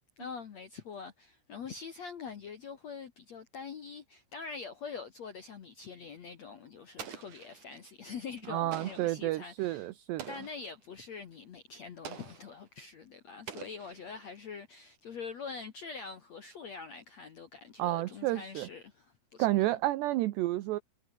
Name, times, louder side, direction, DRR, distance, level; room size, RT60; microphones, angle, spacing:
voice 1, 0.2-9.9 10.3-19.5, left 5 dB, 75° left, 1.5 m, -44 dB
Explosion, 7.0-7.9 8.7-9.3 10.2-10.7 12.0-12.6 13.5-14.3, right 8 dB, 45° right, 3.2 m, -46 dB
voice 2, 8.5-10.3 17.8-18.7 19.4-20.8, right 16 dB, 75° right, 2.7 m, -30 dB
omnidirectional pair, 5.9 m